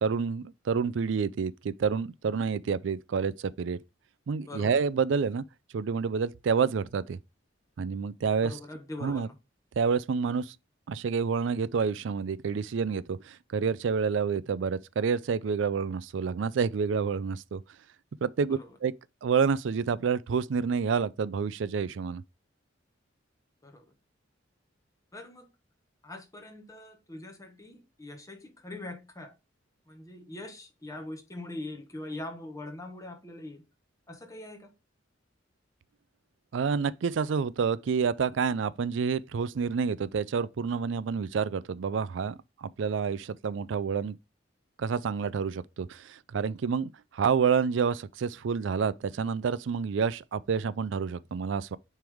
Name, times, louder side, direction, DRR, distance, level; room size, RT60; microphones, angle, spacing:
voice 1, 0.0-3.8 4.3-5.4 5.7-7.2 7.8-8.5 9.0-9.3 9.8-10.5 10.9-17.6 18.2-18.9 19.2-22.2 36.5-44.2 44.8-51.8, right 6 dB, 65° right, 0.4 m, -28 dB
voice 2, 4.5-4.8 8.4-9.4 18.5-18.8 23.6-23.9 25.1-25.5 26.0-29.3 29.9-33.6 34.1-34.7, left 2 dB, 15° left, 1.2 m, -42 dB
9.1 x 3.4 x 3.5 m
head